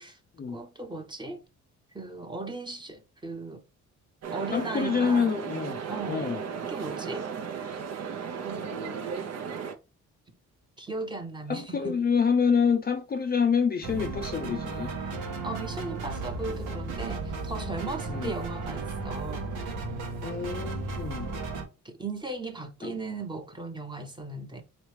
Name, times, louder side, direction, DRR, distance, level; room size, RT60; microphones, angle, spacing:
voice 1, 0.5-1.4 1.9-3.6 4.3-5.3 5.9-6.3 6.6-7.3 8.4-9.0 10.8-12.0 15.4-19.5 21.8-24.6, right 3 dB, 15° right, 0.9 m, -37 dB
sound 1, 4.2-9.7, right 6 dB, 60° right, 0.8 m, -35 dB
voice 2, 4.5-5.8 6.1-6.4 11.5-14.9 18.1-18.3 20.2-21.3 22.8-23.0, left 6 dB, 30° left, 0.5 m, -27 dB
sound 2, 13.8-21.6, right 3 dB, 90° right, 1.1 m, -34 dB
4.0 x 3.1 x 3.2 m
cardioid pair, 90°, 30 cm